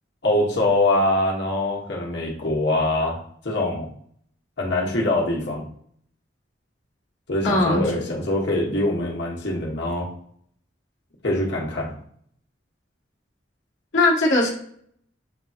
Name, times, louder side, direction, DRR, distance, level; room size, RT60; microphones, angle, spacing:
voice 1, 0.2-3.2 3.4-3.9 4.6-5.6 7.3-10.1 11.2-11.9, left 1 dB, 65° left, -3 dB, 1.2 m, -23 dB
voice 2, 7.4-7.9 13.9-14.5, left 2 dB, 85° left, -4 dB, 1.1 m, -19 dB
7.1 x 2.9 x 2.4 m, 0.64 s
head